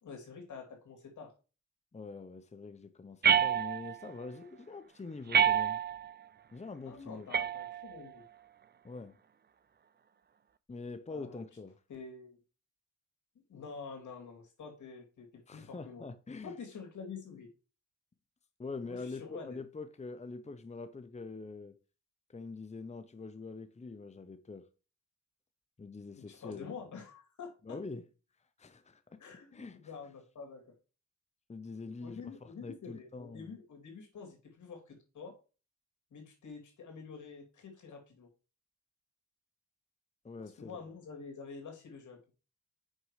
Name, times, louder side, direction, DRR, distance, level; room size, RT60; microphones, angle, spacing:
voice 1, 0.0-1.3 6.8-8.2 11.1-11.4 11.9-12.4 13.5-16.0 16.4-17.5 18.8-19.6 26.2-27.8 29.2-30.6 32.0-35.3 36.1-38.3 40.6-42.2, left 5 dB, 80° left, 2.5 m, -47 dB
voice 2, 1.9-5.8 6.5-7.3 8.8-9.2 10.7-11.7 15.5-16.6 18.6-21.8 22.3-24.7 25.8-26.7 27.6-28.0 28.6-29.9 31.5-33.5 40.2-40.8, left 3 dB, 25° left, 0.8 m, -44 dB
sound 1, 3.2-4.1 5.3-6.1 7.3-8.1, right 8 dB, 35° right, 0.5 m, -28 dB
6.3 x 5.3 x 4.9 m
cardioid pair, 70°, 29 cm